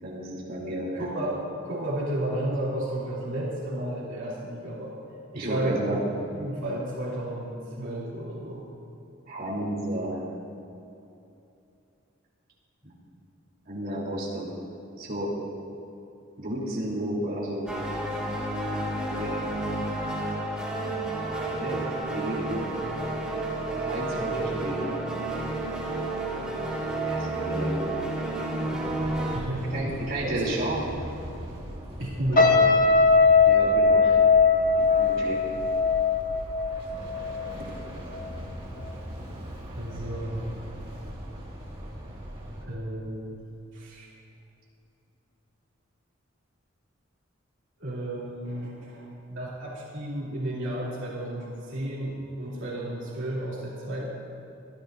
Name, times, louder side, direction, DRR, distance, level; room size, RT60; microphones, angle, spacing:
voice 1, 0.0-1.0 5.3-6.0 9.3-10.2 12.8-12.9 13.7-14.5 15.0-15.3 16.4-17.7 19.0-19.5 21.6-21.8 22.1-22.7 23.8-24.9 27.1-27.7 28.1-28.2 29.7-30.8 33.4-34.2 34.8-35.4, right 1 dB, 45° right, -5 dB, 3.2 m, -32 dB
voice 2, 1.0-5.0 5.3-6.0 6.3-8.6 29.3-29.9 30.2-30.5 32.0-32.8 39.8-40.5 42.6-43.4 43.7-44.1 47.8-54.1, right 1 dB, 65° right, -7 dB, 2.9 m, -32 dB
sound 1, 17.7-29.4, right 2 dB, 5° right, 2.0 m, -30 dB
sound 2, 28.8-42.7, equal, 30° right, 2.0 m, -40 dB
sound 3, 32.3-37.6 38.0-38.3, left 4 dB, 45° left, 1.2 m, -20 dB
25.0 x 13.0 x 2.6 m, 2.7 s
head